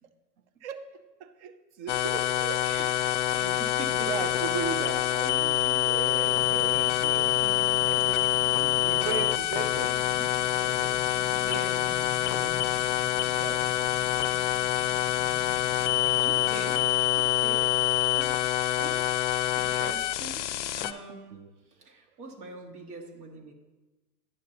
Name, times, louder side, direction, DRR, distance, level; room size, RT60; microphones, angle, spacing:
voice 1, 1.2-1.5 1.8-2.7 3.0-3.6 4.1-7.3 7.9-8.2 8.5-10.3 10.6-11.0 11.3-11.6 12.3-12.5 13.3-13.9 14.8-14.9 21.3-21.5, right 7 dB, 45° right, 10 dB, 0.8 m, -38 dB
sound 1, 1.9-20.9, left 13 dB, 50° left, 0.4 m, -26 dB
voice 2, 2.6-2.9 3.3-4.3 7.4-7.9 11.4-12.8 14.0-14.4 15.5-15.9 16.2-16.8 17.1-17.6 18.1-18.4 18.8-19.0 19.5-23.5, right 3 dB, 70° right, 1 dB, 1.8 m, -44 dB
sound 2, 6.2-16.9, left 3 dB, 5° left, 0.7 m, -46 dB
10.5 x 6.6 x 2.8 m, 1.2 s
hypercardioid pair, 115°, 47 cm